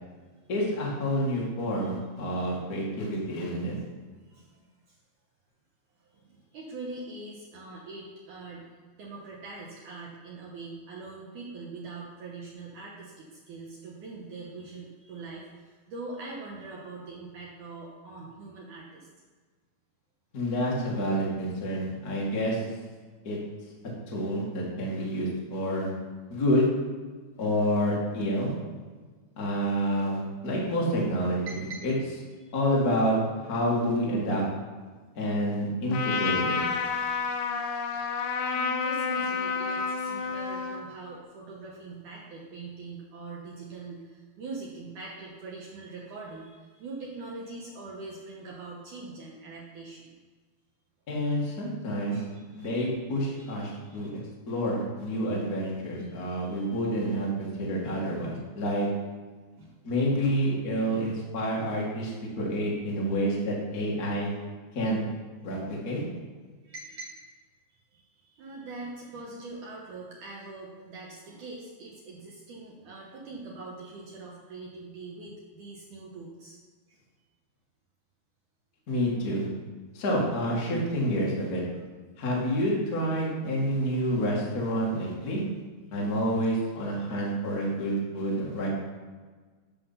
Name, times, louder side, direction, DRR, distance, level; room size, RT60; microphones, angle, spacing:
voice 1, 0.5-3.8 20.3-22.6 23.2-23.4 24.1-25.9 26.3-26.7 27.4-28.5 29.3-31.9 32.5-33.2 33.5-34.4 35.1-36.6 51.1-52.2 52.5-54.1 54.5-58.9 59.8-64.3 64.7-65.0 65.4-66.0 78.9-79.5 79.9-81.6 82.2-85.4 85.9-88.8, equal, 45° left, -4 dB, 1.1 m, -28 dB
voice 2, 4.3-4.6 4.9-5.0 6.0-8.7 9.0-19.1 31.5-31.8 32.4-32.5 37.1-37.2 38.5-50.1 52.1-52.9 53.3-54.1 56.0-56.7 59.6-59.7 60.9-61.0 66.6-67.2 67.7-76.6 76.9-77.0 81.7-81.8 82.2-82.6, right 3 dB, 80° right, -3 dB, 1.8 m, -43 dB
Trumpet, 35.9-40.8, left 5 dB, 85° left, 3.2 m, -29 dB
10.0 x 6.0 x 5.7 m, 1.4 s
omnidirectional pair, 5.2 m